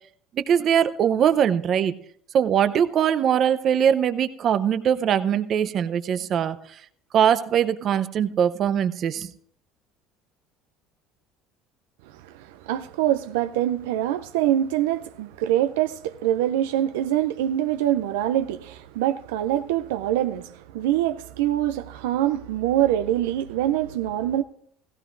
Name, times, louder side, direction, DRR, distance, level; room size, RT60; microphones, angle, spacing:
voice 1, 0.5-1.9 2.3-6.6 7.1-9.3, right 9 dB, 50° right, 0.7 m, -21 dB
voice 2, 12.1-24.4, right 12 dB, 90° right, 0.4 m, -24 dB
16.0 x 16.0 x 2.6 m
supercardioid pair, 95°, 0 cm